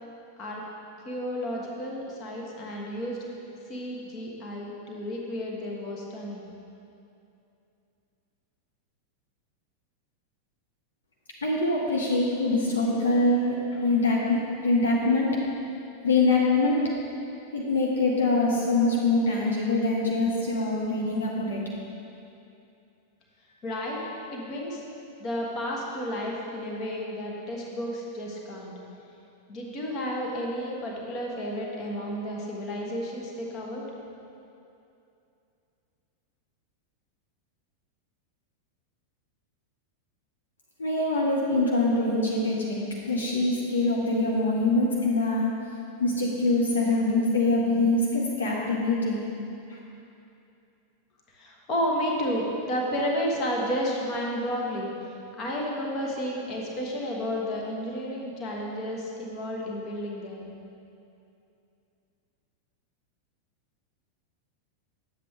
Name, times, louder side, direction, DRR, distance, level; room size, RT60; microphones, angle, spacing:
voice 1, 1.0-3.3 3.7-6.5 23.6-24.0 24.3-24.8 25.2-28.7 29.5-33.9 51.3-60.4, equal, 35° left, -2 dB, 1.4 m, -32 dB
voice 2, 11.4-15.3 16.0-16.8 17.5-21.6 40.8-42.8 43.1-45.5 46.0-49.2 49.7-49.8, left 2 dB, 70° left, -3 dB, 1.0 m, -24 dB
9.7 x 7.4 x 3.6 m, 2.7 s
figure-of-eight pair, 90°, 0 cm